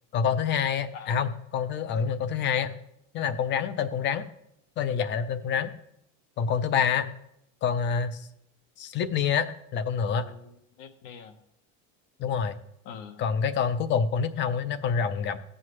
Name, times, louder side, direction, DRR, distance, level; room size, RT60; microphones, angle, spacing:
voice 1, 0.1-2.7 3.1-4.2 4.8-5.7 6.4-7.1 7.6-8.3 8.8-9.5 9.7-10.3 12.2-12.6 13.2-15.4, left 7 dB, 30° left, 13 dB, 0.4 m, -27 dB
voice 2, 0.9-1.3 10.1-11.4 12.8-13.2, left 6 dB, 85° left, 6 dB, 1.2 m, -45 dB
15.0 x 7.6 x 3.1 m, 0.76 s
cardioid pair, 170°, 39 cm